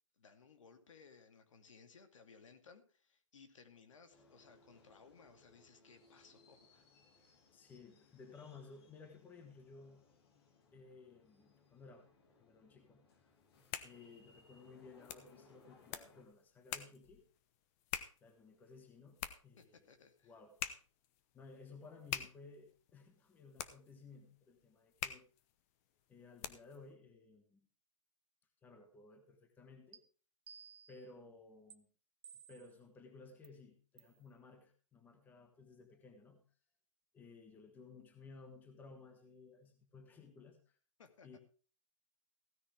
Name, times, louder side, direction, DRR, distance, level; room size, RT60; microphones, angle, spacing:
voice 1, 0.1-6.9 19.6-20.3 41.0-41.4, left 5 dB, 70° left, 7 dB, 2.4 m, -61 dB
sound 1, 4.1-16.2, left 3 dB, 50° left, 3.0 m, -67 dB
voice 2, 7.5-10.1 10.7-13.3 13.8-17.3 18.2-19.7 20.2-20.6 21.3-25.3 26.1-27.7 28.6-30.0 30.9-31.9 32.3-36.5 37.1-40.8 41.2-41.4, left 4 dB, 10° left, 6 dB, 1.4 m, -57 dB
sound 2, 13.4-26.9, left 10 dB, 30° left, 0.9 m, -48 dB
sound 3, 29.9-30.0 30.5-31.1 31.7-31.8 32.2-32.8 33.4-33.5 34.0-34.2, right 7 dB, 55° right, 1.0 m, -57 dB
16.0 x 9.8 x 3.4 m, 0.38 s
hypercardioid pair, 155°, 17 cm